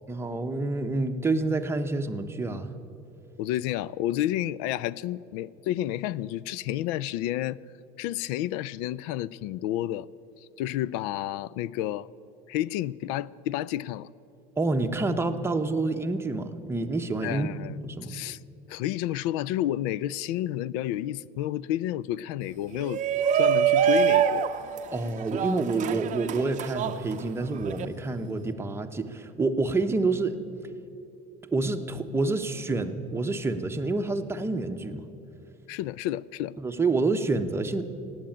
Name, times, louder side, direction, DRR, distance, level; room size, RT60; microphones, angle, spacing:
voice 1, 0.1-2.7 14.6-17.5 17.8-18.2 24.9-30.4 31.5-35.0 36.6-37.8, right 3 dB, 10° right, 0.8 m, -28 dB
voice 2, 3.4-7.6 8.0-10.1 10.6-12.1 12.5-14.1 17.2-18.4 18.7-23.0 23.3-24.5 35.7-36.6, left 13 dB, 85° left, 0.4 m, -30 dB
Shout, 22.7-27.9, right 9 dB, 40° right, 0.6 m, -25 dB
16.5 x 8.7 x 9.1 m
cardioid pair, 125°, 20 cm